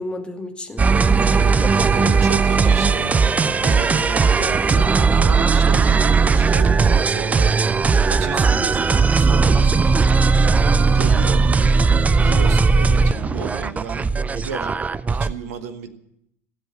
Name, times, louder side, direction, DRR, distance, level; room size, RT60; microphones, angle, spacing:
voice 1, 0.0-2.2 2.7-2.9 11.1-11.3, left 2 dB, 10° left, 4 dB, 2.3 m, -33 dB
sound 1, 0.8-15.3, right 4 dB, 15° right, 0.5 m, -17 dB
voice 2, 2.0-3.2 3.5-7.6 8.1-10.2 10.9-11.4 12.2-15.9, right 7 dB, 65° right, 9 dB, 1.2 m, -34 dB
16.5 x 8.0 x 8.7 m, 0.76 s
figure-of-eight pair, 75°, 8 cm